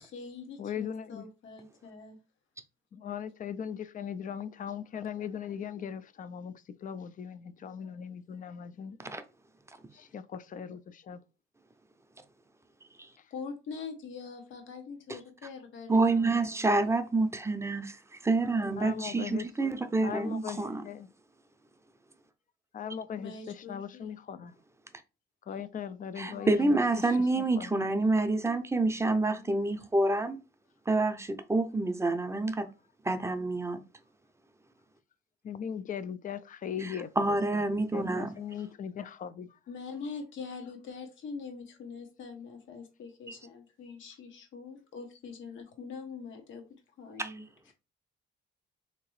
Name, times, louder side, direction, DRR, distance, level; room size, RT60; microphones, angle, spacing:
voice 1, 0.0-2.2 13.3-16.6 23.2-24.1 26.3-26.5 29.3-29.5 29.8-29.9 39.7-46.6 47.0-47.7, left 5 dB, 75° left, 1.0 m, -44 dB
voice 2, 0.6-1.3 2.9-9.0 9.9-11.2 18.8-19.5 20.0-21.1 22.7-24.5 25.5-27.1 27.4-27.9 35.4-37.6 37.9-39.5, left 8 dB, 45° left, 0.4 m, -39 dB
voice 3, 15.9-20.8 26.2-30.4 30.9-32.7 33.0-33.8 36.8-38.3 43.3-43.4 47.2-47.3, right 2 dB, 15° right, 0.5 m, -28 dB
3.5 x 2.8 x 3.1 m
cardioid pair, 90°, 20 cm